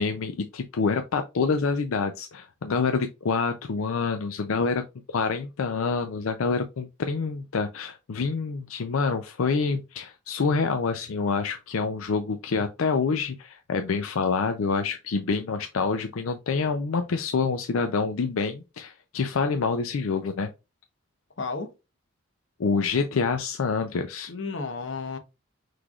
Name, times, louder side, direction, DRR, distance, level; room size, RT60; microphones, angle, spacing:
voice 1, 0.0-4.8 5.1-20.5 22.6-24.3, left 4 dB, 85° left, 0.5 m, -27 dB
voice 2, 21.4-21.7 24.3-25.2, left 4 dB, 65° left, 0.9 m, -32 dB
5.9 x 3.3 x 2.3 m
head